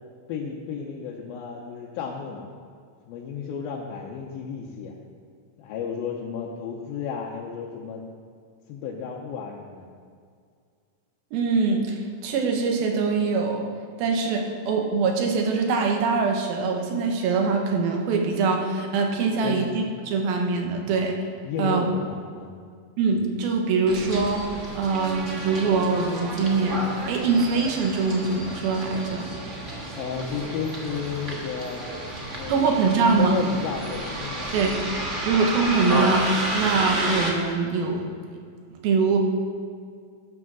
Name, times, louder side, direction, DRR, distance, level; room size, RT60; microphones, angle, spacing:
voice 1, 0.3-2.5 3.1-4.9 5.6-8.0 8.7-9.9 19.4-19.8 21.4-22.6 30.0-31.9 32.3-32.6 33.2-34.5, left 6 dB, 85° left, -2 dB, 2.6 m, -33 dB
voice 2, 11.3-13.7 14.0-21.1 21.6-21.8 23.0-24.4 24.8-29.3 32.5-33.4 34.5-34.7 35.2-36.3 36.5-38.0 38.8-39.2, right 4 dB, 85° right, 2 dB, 3.0 m, -23 dB
Bus, 23.9-37.3, right 1 dB, 55° right, 0.7 m, -31 dB
12.0 x 6.7 x 6.2 m, 2.2 s
omnidirectional pair, 4.1 m